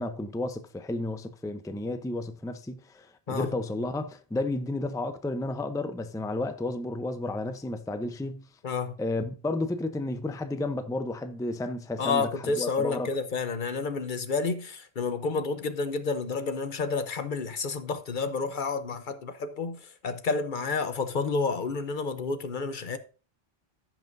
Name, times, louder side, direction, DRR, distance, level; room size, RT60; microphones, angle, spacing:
voice 1, 0.0-8.4 9.0-13.1, left 2 dB, 5° left, 0.5 m, -32 dB
voice 2, 12.0-23.0, left 4 dB, 55° left, 0.9 m, -30 dB
15.5 x 5.8 x 2.6 m
omnidirectional pair, 1.0 m